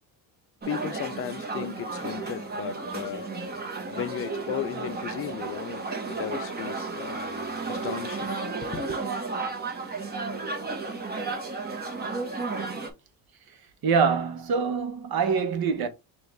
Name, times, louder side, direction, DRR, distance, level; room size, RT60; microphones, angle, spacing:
sound 1, 0.6-12.9, right 3 dB, 20° right, 1.1 m, -33 dB
voice 1, 0.7-3.3 3.9-7.2 7.7-8.3 8.6-9.0, left 10 dB, 30° left, 0.4 m, -35 dB
voice 2, 13.8-15.9, right 6 dB, 50° right, 1.0 m, -25 dB
4.3 x 2.6 x 3.4 m
cardioid pair, 100°, 46 cm